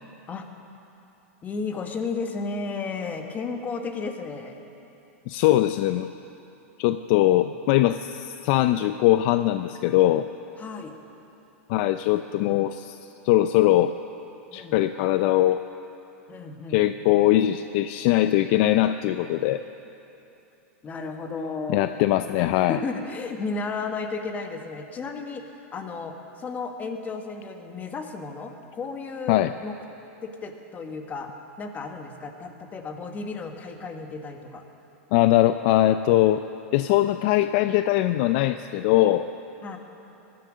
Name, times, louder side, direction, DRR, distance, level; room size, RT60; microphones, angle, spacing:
voice 1, 1.4-4.5 7.4-7.5 10.6-10.9 14.5-14.8 16.3-16.9 20.8-21.9 22.2-25.4 25.7-29.7 30.2-31.3 31.6-34.6 39.6-39.8, left 4 dB, 20° left, 5 dB, 1.4 m, -33 dB
voice 2, 5.3-6.1 6.8-10.3 11.7-13.0 13.2-13.9 14.5-15.6 16.7-19.6 21.7-22.8 29.3-29.5 35.1-36.4 36.7-39.3, left 14 dB, 50° left, 11 dB, 0.4 m, -21 dB
18.0 x 11.5 x 6.4 m, 2.9 s
hypercardioid pair, 130°, 7 cm